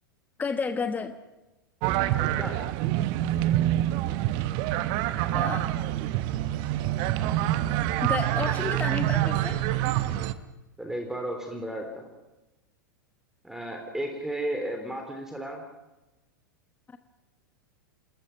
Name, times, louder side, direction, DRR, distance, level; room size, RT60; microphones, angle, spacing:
voice 1, 0.4-1.1 5.3-5.7 8.0-9.6, left 5 dB, 15° left, 9 dB, 1.2 m, -31 dB
sound 1, 1.8-10.3, right 14 dB, 45° right, 1.2 m, -26 dB
voice 2, 2.2-2.6 10.8-12.1 13.4-15.6, right 1 dB, 5° right, 3 dB, 3.5 m, -34 dB
sound 2, 5.1-10.3, left 5 dB, 45° left, 7.2 m, -49 dB
28.0 x 20.5 x 5.9 m, 1.0 s
figure-of-eight pair, 95°, 11 cm